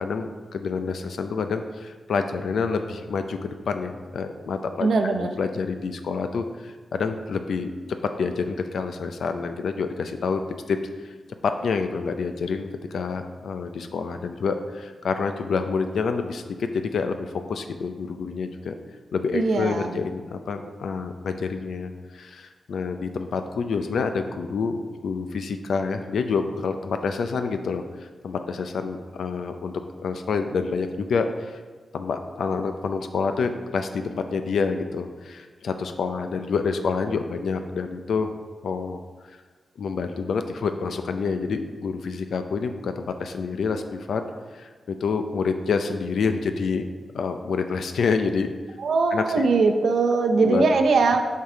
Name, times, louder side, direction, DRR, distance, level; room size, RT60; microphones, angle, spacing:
voice 1, 0.0-7.7 8.2-10.4 10.7-10.8 11.0-11.1 11.4-18.7 19.1-31.6 31.9-38.3 38.6-39.0 39.8-44.2 44.5-44.7 45.0-46.8 47.1-48.5 49.1-49.5 50.4-50.7, left 5 dB, 90° left, 7 dB, 0.5 m, -28 dB
voice 2, 4.8-5.3 19.3-20.0 48.8-51.2, right 4 dB, 80° right, 4 dB, 0.7 m, -21 dB
8.3 x 4.6 x 3.8 m, 1.4 s
wide cardioid pair, 95°, 0 cm